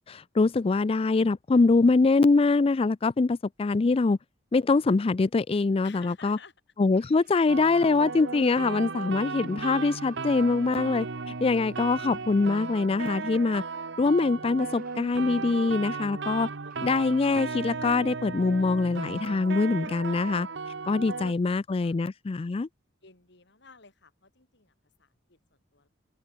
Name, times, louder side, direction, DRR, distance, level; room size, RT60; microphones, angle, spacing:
voice 1, 0.1-4.2 4.5-6.4 6.8-11.1 11.4-13.6 14.0-16.5 16.8-20.5 20.9-22.7, left 3 dB, 30° left, 0.4 m, -24 dB
sound 1, 3.6-3.7 4.5-4.7 6.3-6.4 6.9-8.6 9.5-13.1 14.6-16.1 16.7-18.2 19.9-20.1, right 7 dB, 50° right, 6.9 m, -63 dB
voice 2, 5.8-6.5 21.8-21.9 23.0-25.9, left 5 dB, 65° left, 3.7 m, -54 dB
sound 2, 7.5-21.3, right 4 dB, 65° right, 1.0 m, -36 dB
head